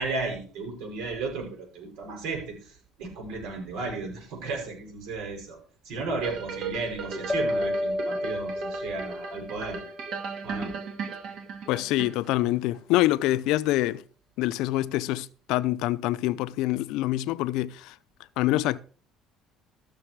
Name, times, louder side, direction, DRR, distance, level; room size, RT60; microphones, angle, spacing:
voice 1, 0.0-2.7 3.0-5.6 5.9-9.8 10.4-10.8, right 3 dB, 75° right, 7.0 m, -34 dB
sound 1, 6.2-12.5 13.0-13.1, right 5 dB, 60° right, 2.4 m, -37 dB
sound 2, 7.3-10.3, left 1 dB, 10° left, 0.6 m, -31 dB
voice 2, 11.7-14.0 14.4-17.9 18.4-18.8, left 16 dB, 75° left, 0.6 m, -25 dB
14.5 x 6.8 x 4.8 m
cardioid pair, 120°, 0 cm